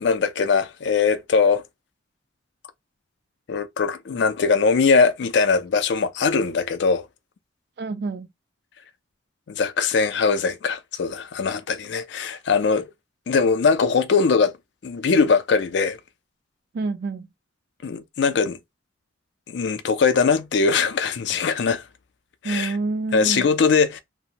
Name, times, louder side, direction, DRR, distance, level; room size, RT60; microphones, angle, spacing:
voice 1, 0.0-1.6 3.5-7.1 9.5-12.9 13.3-14.5 14.8-16.0 17.8-18.6 19.5-21.8 22.4-22.8 23.1-24.0, left 5 dB, 60° left, 0.4 m, -21 dB
voice 2, 7.8-8.3 16.7-17.3 22.4-23.5, right 3 dB, 55° right, 0.3 m, -27 dB
2.8 x 2.1 x 2.5 m
head